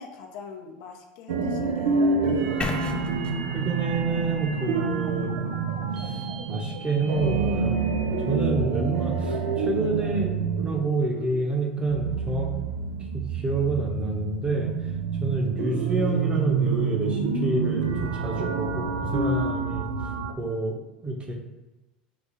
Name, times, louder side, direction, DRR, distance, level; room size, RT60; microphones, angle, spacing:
voice 1, 0.0-2.6, left 5 dB, 65° left, 1 dB, 0.7 m, -43 dB
sound 1, 1.3-20.3, right 5 dB, 80° right, 0.5 m, -28 dB
sound 2, 2.6-6.6, left 3 dB, 20° left, 0.5 m, -36 dB
voice 2, 3.5-5.3 6.0-6.2 6.5-7.8 8.3-12.5 13.3-14.7 15.2-19.9 20.4-21.3, right 3 dB, 25° right, 1 dB, 1.0 m, -28 dB
5.0 x 2.3 x 4.0 m, 1.1 s
hypercardioid pair, 90°, 5 cm